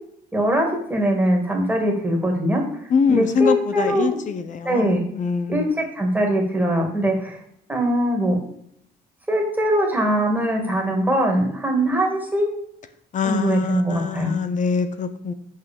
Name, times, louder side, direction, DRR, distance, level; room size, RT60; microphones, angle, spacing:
voice 1, 0.3-2.6 3.1-4.2 4.6-5.0 5.5-7.4 7.7-8.4 9.3-12.5 13.2-14.4, equal, 10° right, 1 dB, 2.4 m, -21 dB
voice 2, 2.9-5.7 13.1-15.3, left 5 dB, 50° left, 9 dB, 0.9 m, -24 dB
6.0 x 5.7 x 6.9 m, 0.71 s
cardioid pair, 110°, 17 cm